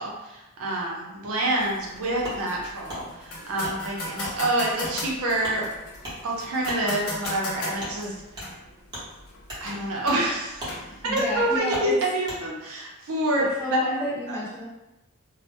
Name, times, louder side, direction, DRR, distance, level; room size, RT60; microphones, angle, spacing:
voice 1, 0.0-5.7 6.2-8.1 9.6-10.6 11.0-13.4 14.3-14.4, right 1 dB, 70° right, -3 dB, 0.6 m, -27 dB
sound 1, 1.6-11.6, left 2 dB, 70° left, 0.5 m, -39 dB
Wood, 2.2-2.4 2.9-3.0 3.6-3.8 4.2-4.4 4.8-5.0 5.4-5.6 6.0-6.2 6.6-6.8 7.2-7.4 7.8-7.9 8.3-8.5 8.9-9.0 9.5-9.6 10.1-10.2 10.6-10.8 11.2-11.3 11.7-11.9 12.2-12.4, equal, 20° right, 0.8 m, -36 dB
voice 2, 10.8-11.9 13.4-14.6, left 1 dB, 15° left, -8 dB, 0.6 m, -31 dB
2.1 x 2.1 x 2.8 m, 0.98 s
head